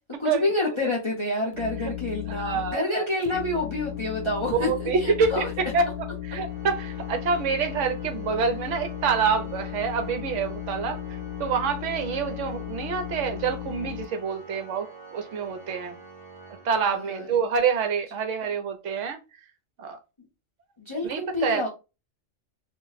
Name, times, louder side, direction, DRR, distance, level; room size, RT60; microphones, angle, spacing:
voice 1, 0.2-4.7 5.0-5.5 16.8-17.4 20.8-21.7, left 2 dB, 30° left, 0.6 m, -28 dB
sound 1, 1.5-2.7 3.2-14.0, left 13 dB, 80° left, 1.0 m, -35 dB
voice 2, 2.3-3.4 4.5-5.4 5.7-5.9 6.2-11.0 11.4-14.9 15.1-15.9 16.6-19.2 19.8-20.0 21.0-21.7, right 5 dB, 75° right, 0.9 m, -27 dB
Organ, 6.4-17.4, right 4 dB, 30° right, 0.8 m, -46 dB
2.5 x 2.0 x 3.9 m
omnidirectional pair, 1.4 m